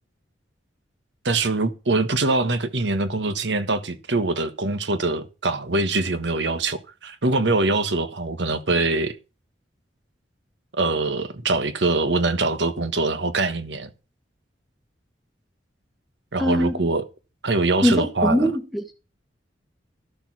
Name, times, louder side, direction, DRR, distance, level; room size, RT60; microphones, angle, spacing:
voice 1, 1.2-9.2 10.8-13.9 16.3-17.0 17.4-18.5, right 3 dB, 70° right, 1.3 m, -23 dB
voice 2, 16.4-16.8 17.8-18.9, equal, ahead, 1.1 m, -22 dB
12.5 x 6.9 x 6.0 m
head